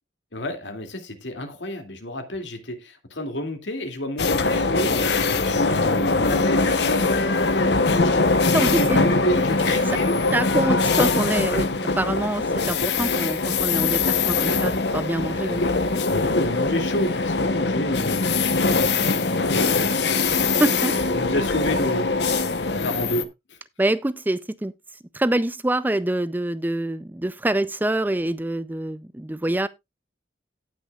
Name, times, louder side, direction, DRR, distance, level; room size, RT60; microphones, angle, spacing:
voice 1, 0.3-5.0 5.4-8.2 8.7-11.2 15.3-15.7 16.1-20.0 21.1-22.1 22.8-23.3, left 1 dB, 85° left, 2.4 m, -29 dB
sound 1, 4.2-23.2, left 3 dB, 70° left, 0.9 m, -22 dB
voice 2, 8.5-9.0 10.3-11.7 12.0-15.7 20.6-21.0 23.8-24.7 25.1-29.7, right 1 dB, 10° right, 0.4 m, -25 dB
18.0 x 6.2 x 2.3 m
head